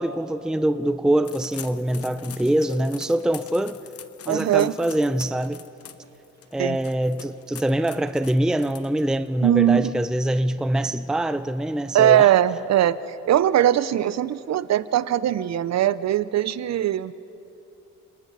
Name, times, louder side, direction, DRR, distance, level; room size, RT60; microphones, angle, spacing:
voice 1, 0.0-3.8 4.3-5.6 6.5-12.3, right 1 dB, ahead, 0.5 m, -24 dB
sound 1, 1.2-9.3, left 8 dB, 50° left, 1.0 m, -44 dB
voice 2, 4.3-4.7 6.6-6.8 9.4-9.9 11.9-17.1, right 11 dB, 60° right, 0.7 m, -20 dB
29.0 x 19.0 x 5.4 m
cardioid pair, 90°, 30 cm